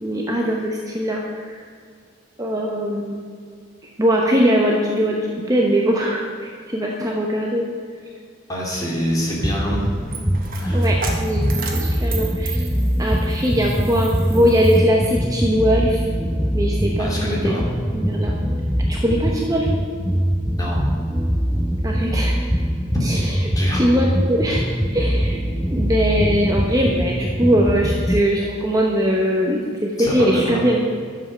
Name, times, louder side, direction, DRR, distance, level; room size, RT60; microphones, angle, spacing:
voice 1, 0.0-1.6 2.4-3.2 4.0-5.2 5.5-7.7 10.7-12.7 13.0-16.0 16.5-17.6 17.9-18.3 18.9-19.7 21.8-22.4 23.0-23.2 23.7-24.7 24.9-25.4 25.7-30.8, equal, 15° right, -2 dB, 1.0 m, -21 dB
voice 2, 8.5-9.9 10.6-10.9 17.0-17.7 20.6-20.8 22.9-23.1 23.6-23.8 30.0-30.6, equal, 20° left, -4 dB, 2.9 m, -26 dB
sound 1, 9.4-28.2, equal, ahead, 0.4 m, -22 dB
Coin (dropping), 9.4-15.1, right 5 dB, 45° right, 1.5 m, -35 dB
11.5 x 7.4 x 6.7 m, 2.1 s
head